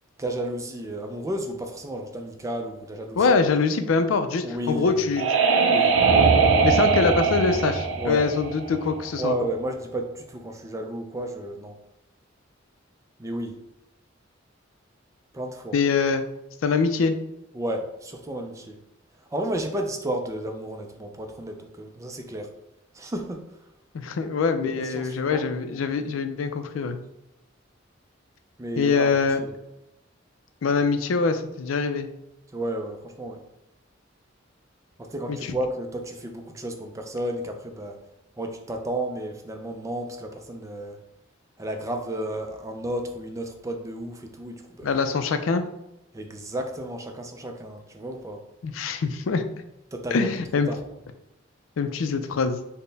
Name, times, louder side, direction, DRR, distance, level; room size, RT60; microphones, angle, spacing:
voice 1, 0.2-3.3 4.4-5.1 5.7-6.0 8.0-8.2 9.2-11.8 13.2-13.6 15.3-15.8 17.5-18.8 19.3-22.5 22.9-23.4 24.6-25.8 28.6-29.5 32.5-33.4 35.0-38.0 38.4-41.0 41.6-44.9 46.1-48.4 49.9-50.3 50.7-50.8, right 1 dB, 15° right, 4 dB, 0.4 m, -32 dB
voice 2, 3.2-5.3 6.6-9.4 15.7-16.2 16.6-17.1 23.9-27.0 28.8-29.4 30.6-32.1 35.3-35.6 44.8-45.7 48.6-49.4 50.1-50.7 51.8-52.6, left 4 dB, 85° left, 8 dB, 0.4 m, -24 dB
sound 1, 4.6-9.2, right 5 dB, 80° right, 0.5 m, -21 dB
4.2 x 2.1 x 3.3 m, 0.90 s
head